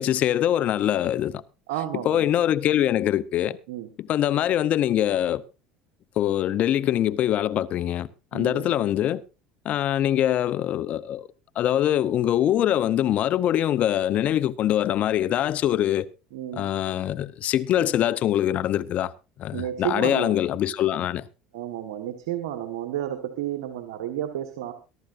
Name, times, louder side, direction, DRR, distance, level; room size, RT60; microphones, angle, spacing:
voice 1, 0.0-1.4 2.0-3.6 4.0-5.4 6.2-9.2 9.6-11.3 11.6-16.1 16.5-19.1 19.4-21.2, left 11 dB, 55° left, 0.8 m, -23 dB
voice 2, 1.7-2.3 3.7-3.9 8.3-8.7 16.3-16.7 19.5-20.4 21.5-24.7, right 11 dB, 80° right, 1.4 m, -31 dB
22.5 x 12.0 x 2.6 m
supercardioid pair, 85°, 3 cm